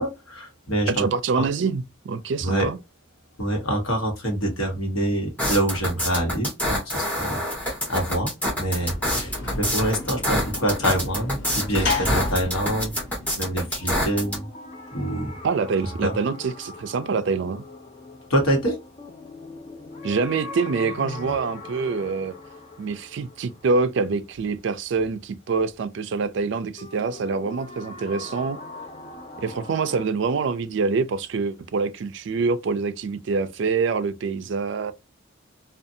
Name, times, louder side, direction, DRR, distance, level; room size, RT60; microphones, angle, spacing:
voice 1, 0.0-1.0 1.4-1.5 2.4-2.7 3.4-8.3 8.6-13.0 13.4-14.5 14.9-15.4 16.0-16.1 18.3-18.8, right 1 dB, 85° left, 1.1 m, -26 dB
voice 2, 0.9-2.8 15.4-17.6 20.0-22.3 22.8-28.6 29.4-34.9, right 4 dB, 60° right, 0.3 m, -25 dB
sound 1, 5.4-14.4, equal, 5° left, 0.9 m, -26 dB
Sliding door / Slam, 8.5-13.9, left 2 dB, 55° left, 1.0 m, -31 dB
sound 2, 13.8-24.7 26.8-30.1, left 2 dB, 30° left, 0.4 m, -41 dB
2.6 x 2.3 x 2.6 m
head